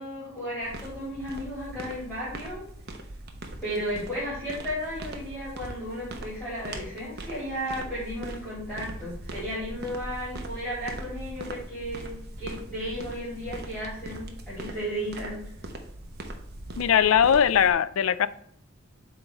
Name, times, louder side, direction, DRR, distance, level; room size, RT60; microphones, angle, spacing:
voice 1, 0.0-2.6 3.6-15.4, equal, 5° left, 2.9 m, -34 dB
sound 1, 0.6-17.7, right 1 dB, 55° right, 1.0 m, -41 dB
voice 2, 16.8-18.3, left 8 dB, 75° left, 0.4 m, -20 dB
8.0 x 3.6 x 4.4 m
head